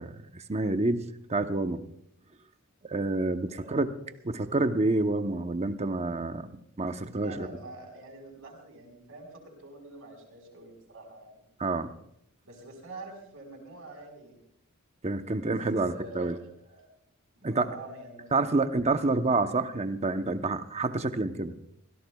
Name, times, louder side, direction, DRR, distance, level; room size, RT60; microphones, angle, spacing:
voice 1, 0.0-1.8 2.8-3.9 4.2-6.5 6.8-7.5 11.6-11.9 15.0-16.4 17.4-17.7 18.3-21.5, right 2 dB, 30° right, 9 dB, 0.8 m, -28 dB
voice 2, 3.5-3.8 7.1-11.5 12.4-14.4 15.4-16.9 17.4-18.4, right 1 dB, 70° right, 2 dB, 4.6 m, -46 dB
25.5 x 16.5 x 2.3 m, 0.74 s
head